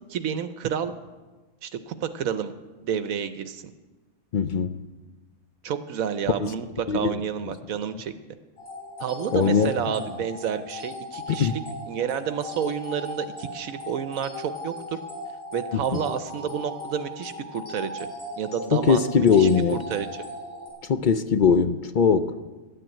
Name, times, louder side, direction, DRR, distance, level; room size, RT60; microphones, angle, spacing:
voice 1, 0.1-0.9 1.6-2.5 2.8-3.6 5.6-8.1 9.0-11.6 11.9-15.0 15.5-18.1 18.4-20.2, right 8 dB, 80° right, 1.1 m, -30 dB
voice 2, 4.3-4.8 6.4-6.5 6.9-7.2 9.3-9.7 11.3-11.6 15.7-16.0 18.7-19.8 20.8-22.5, left 6 dB, 60° left, 0.5 m, -21 dB
sound 1, 8.6-20.7, left 1 dB, 75° left, 4.9 m, -38 dB
12.5 x 9.2 x 8.9 m
omnidirectional pair, 1.4 m